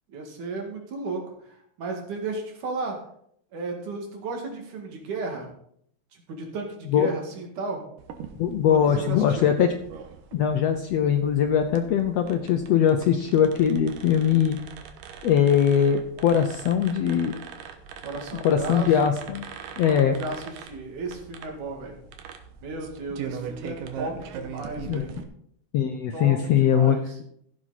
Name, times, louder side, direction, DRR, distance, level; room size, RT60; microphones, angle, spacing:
voice 1, 0.1-3.0 3.5-5.5 6.1-7.8 8.7-9.5 18.0-18.9 19.8-22.0 22.6-25.1 26.1-27.2, right 3 dB, 70° right, 2 dB, 3.5 m, -34 dB
sound 1, 8.0-25.2, right 7 dB, 85° right, 2.6 m, -41 dB
voice 2, 8.4-9.7 10.3-14.6 15.2-17.4 18.4-19.4 19.8-20.1 24.9-25.0 25.7-27.0, left 8 dB, 75° left, 6 dB, 1.5 m, -21 dB
15.5 x 7.5 x 4.1 m, 0.69 s
omnidirectional pair, 3.7 m